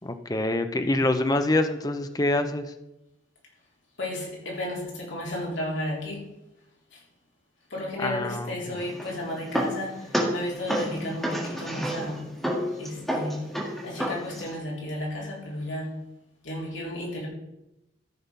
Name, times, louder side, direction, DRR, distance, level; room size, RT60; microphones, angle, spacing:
voice 1, 0.0-2.7 8.0-8.8, left 2 dB, 20° left, 8 dB, 0.6 m, -26 dB
voice 2, 4.0-6.3 6.9-7.0 7.7-12.3 12.8-13.5 13.8-16.0 16.4-17.3, left 1 dB, 65° left, -3 dB, 3.7 m, -33 dB
sound 1, 8.8-14.6, equal, ahead, 1.8 m, -31 dB
13.5 x 5.6 x 5.6 m, 0.89 s
head